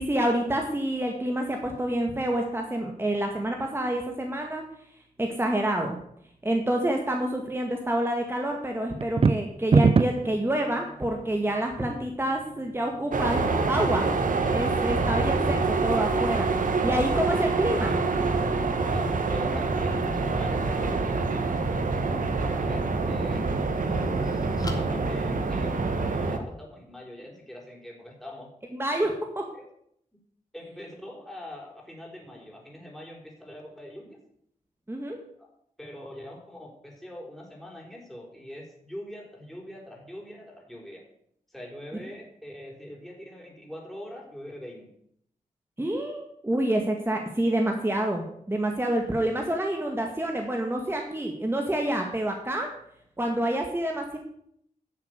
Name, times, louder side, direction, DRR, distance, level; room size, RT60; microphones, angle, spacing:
voice 1, 0.0-4.6 5.2-6.0 6.4-14.1 14.5-16.5 16.8-18.0 28.8-29.1 34.9-35.2 45.8-52.7 53.2-54.2, right 1 dB, 15° right, 2 dB, 1.9 m, -27 dB
sound 1, 9.0-10.3, right 4 dB, 40° right, 0.5 m, -20 dB
sound 2, 13.1-26.4, right 3 dB, 70° right, 1.6 m, -26 dB
voice 2, 18.8-24.1 24.6-28.5 29.0-29.1 29.5-29.7 30.5-34.2 35.4-35.5 35.8-41.1 41.5-44.9 47.4-47.5, left 1 dB, ahead, -2 dB, 4.5 m, -43 dB
sound 3, 23.1-26.1, left 2 dB, 25° left, 2.2 m, -42 dB
11.0 x 7.2 x 8.3 m, 0.70 s
wide cardioid pair, 85°, 14 cm